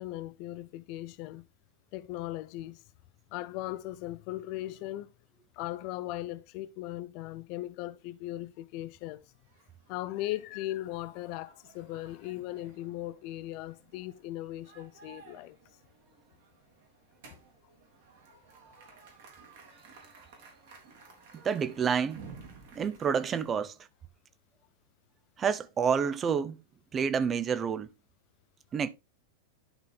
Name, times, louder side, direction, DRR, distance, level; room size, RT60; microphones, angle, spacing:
voice 1, 0.0-1.5 1.9-2.8 3.3-5.1 5.5-9.2 9.9-15.6 21.1-21.2, left 15 dB, 45° left, 0.5 m, -38 dB
sound 1, 9.3-23.5, right 4 dB, 55° right, 2.7 m, -55 dB
voice 2, 21.4-22.3 22.7-23.9 25.4-26.6 26.9-27.9 28.7-28.9, right 6 dB, 25° right, 0.7 m, -29 dB
11.0 x 4.2 x 3.8 m
figure-of-eight pair, 90°, 0 cm